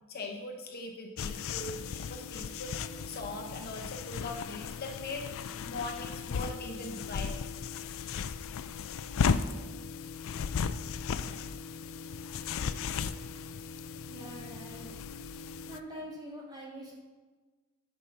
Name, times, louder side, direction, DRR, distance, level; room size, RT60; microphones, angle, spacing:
voice 1, 0.1-7.3, left 2 dB, 45° left, 2 dB, 0.9 m, -41 dB
sound 1, 1.2-15.8, left 6 dB, 65° left, 0.4 m, -36 dB
voice 2, 14.1-14.9 15.7-16.9, equal, 20° right, -4 dB, 2.5 m, -44 dB
9.9 x 5.5 x 5.7 m, 1.3 s
head